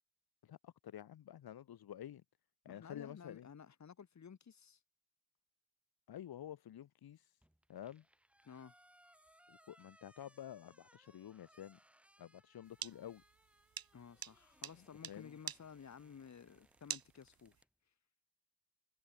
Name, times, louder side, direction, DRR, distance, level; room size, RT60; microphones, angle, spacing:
voice 1, 0.4-2.2 2.6-3.5 6.1-7.3 7.7-8.0 9.5-11.8 12.2-13.2 14.8-15.4, left 11 dB, 85° left, 1.5 m, -50 dB
voice 2, 2.7-4.8 8.4-8.7 13.9-17.6, left 7 dB, 50° left, 2.9 m, -54 dB
sound 1, 7.4-17.7, equal, 5° right, 6.3 m, -69 dB
sound 2, 12.7-17.6, right 9 dB, 75° right, 1.9 m, -47 dB
wide cardioid pair, 140°, 36 cm